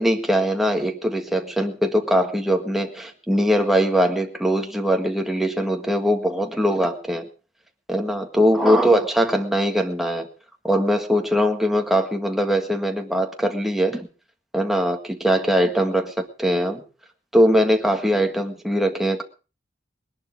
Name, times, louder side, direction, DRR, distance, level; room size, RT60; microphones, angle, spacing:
voice 1, 0.0-7.3 7.9-10.3 10.6-14.1 14.5-16.8 17.3-19.2, equal, ahead, 3 dB, 1.7 m, -21 dB
20.5 x 11.5 x 4.8 m, 0.36 s
head